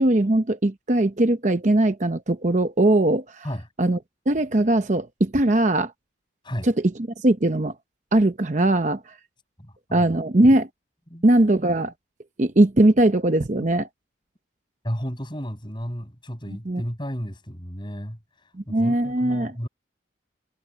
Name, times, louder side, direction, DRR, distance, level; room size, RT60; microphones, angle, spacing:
voice 1, 0.0-3.4 3.8-4.0 4.3-5.9 6.6-7.7 8.1-9.2 9.9-10.7 11.2-11.9 12.4-13.9 16.7-16.8 18.5-19.5, right 1 dB, 40° right, 0.8 m, -20 dB
voice 2, 9.6-10.1 11.1-11.3 14.8-18.2 18.7-19.7, equal, 25° left, 7.0 m, -32 dB
head